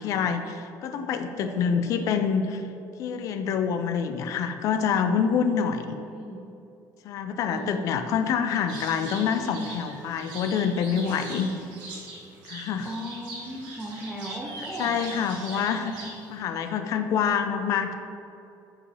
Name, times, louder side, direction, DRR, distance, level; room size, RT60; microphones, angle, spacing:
voice 1, 0.0-2.7 3.0-6.0 7.0-11.5 12.4-12.9 14.6-17.9, left 7 dB, 45° left, 8 dB, 0.4 m, -26 dB
voice 2, 1.4-1.9 6.1-6.4 7.5-7.8 12.8-15.0 15.5-15.6, right 1 dB, 5° right, -5 dB, 0.6 m, -36 dB
sound 1, 8.7-16.4, right 2 dB, 75° right, 1.4 m, -42 dB
5.4 x 4.9 x 4.8 m, 2.7 s
cardioid pair, 180°, 8 cm